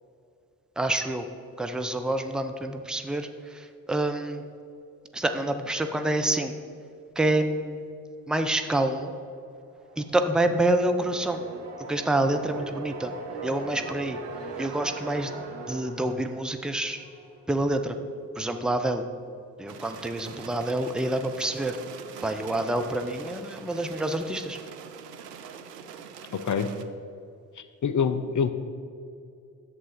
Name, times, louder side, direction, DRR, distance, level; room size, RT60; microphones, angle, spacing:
voice 1, 0.8-1.3 1.6-4.5 5.1-6.6 7.2-7.9 8.3-9.1 10.0-11.4 11.9-13.1 13.4-14.2 14.6-15.3 15.7-17.0 17.5-18.0 18.3-19.0 19.6-21.8 22.2-24.6, right 1 dB, ahead, 7 dB, 0.7 m, -27 dB
sound 1, 9.6-17.4, right 3 dB, 60° right, 1.5 m, -40 dB
sound 2, 19.7-26.9, right 7 dB, 85° right, 0.6 m, -43 dB
voice 2, 26.3-26.7 27.6-28.5, left 6 dB, 40° left, 10 dB, 0.9 m, -26 dB
11.0 x 7.8 x 4.3 m, 2.5 s
figure-of-eight pair, 40°, 47 cm